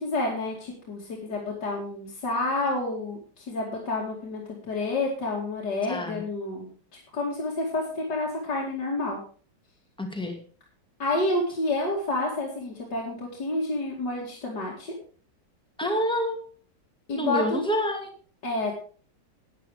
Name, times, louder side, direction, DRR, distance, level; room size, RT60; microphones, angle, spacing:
voice 1, 0.0-6.7 7.1-9.2 11.0-14.9 17.1-17.6 18.4-18.7, left 2 dB, 65° left, -4 dB, 3.1 m, -29 dB
voice 2, 5.9-6.2 10.0-10.4 15.8-16.4 17.1-18.1, equal, 5° left, 3 dB, 2.2 m, -27 dB
11.0 x 9.4 x 5.0 m, 0.42 s
omnidirectional pair, 2.0 m